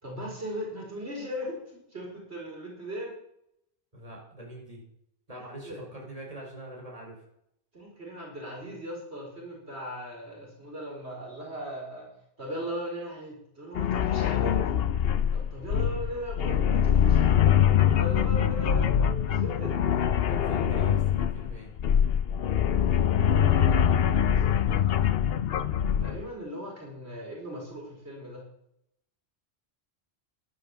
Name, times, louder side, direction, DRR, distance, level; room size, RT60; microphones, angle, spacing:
voice 1, 0.0-3.1 5.4-5.9 7.7-12.1 12.4-14.6 15.3-17.6 17.9-19.8 22.7-24.9 26.0-28.5, equal, 85° right, -1 dB, 4.8 m, -39 dB
voice 2, 3.9-4.8 5.3-7.2 20.3-21.7, right 1 dB, 35° right, -1 dB, 4.9 m, -42 dB
sound 1, 13.8-26.3, left 9 dB, 70° left, 0.9 m, -24 dB
11.5 x 11.0 x 7.0 m, 0.74 s
omnidirectional pair, 1.1 m